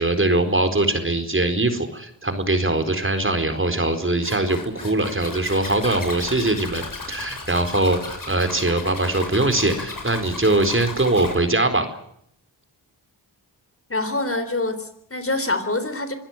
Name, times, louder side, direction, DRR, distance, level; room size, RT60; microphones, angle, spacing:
voice 1, 0.0-11.9, right 2 dB, 30° right, 8 dB, 4.3 m, -22 dB
Zipper (clothing), 4.2-11.4, left 3 dB, 50° left, 7.5 m, -35 dB
voice 2, 13.9-16.2, left 2 dB, 30° left, 10 dB, 3.8 m, -25 dB
25.5 x 16.5 x 9.2 m, 0.70 s
cardioid pair, 60°, 43 cm